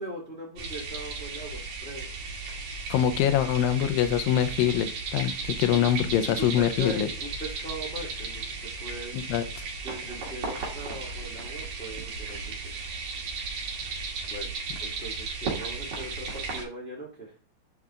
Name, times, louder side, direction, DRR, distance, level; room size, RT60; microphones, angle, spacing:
voice 1, 0.0-2.1 5.7-5.9 6.3-9.2 9.8-12.6 14.3-14.5 14.8-17.3, right 1 dB, 5° left, -5 dB, 1.1 m, -40 dB
sound 1, 0.6-16.6, right 4 dB, 55° right, 3.1 m, -35 dB
voice 2, 2.9-7.1 9.1-9.7, left 10 dB, 80° left, 8 dB, 2.4 m, -24 dB
9.4 x 4.4 x 3.7 m, 0.38 s
omnidirectional pair, 4.2 m